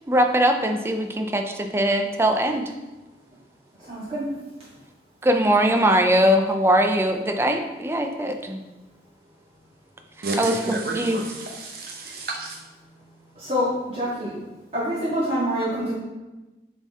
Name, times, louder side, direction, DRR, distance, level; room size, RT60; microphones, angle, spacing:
voice 1, 0.1-2.7 5.2-8.6 10.4-11.2, equal, 15° right, 0.4 m, -21 dB
voice 2, 3.9-4.3 13.4-14.3 14.7-15.9, equal, 35° right, 1.8 m, -26 dB
voice 3, 10.2-12.6, right 2 dB, 55° right, 0.6 m, -31 dB
6.7 x 4.3 x 3.6 m
head